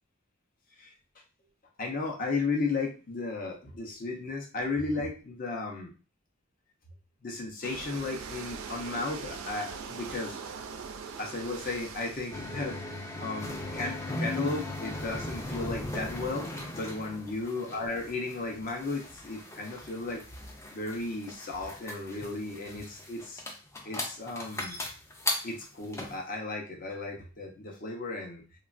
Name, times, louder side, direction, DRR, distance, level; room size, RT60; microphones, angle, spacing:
voice 1, 1.8-5.9 7.2-10.3 11.2-12.8 13.2-20.2 20.7-23.4 23.8-24.8 25.4-28.4, left 3 dB, 45° left, 0 dB, 0.7 m, -34 dB
sound 1, 7.6-12.8, right 5 dB, 80° right, 0.4 m, -41 dB
sound 2, 12.3-26.2, left 2 dB, 15° left, 0.4 m, -38 dB
3.0 x 2.3 x 2.4 m, 0.34 s
head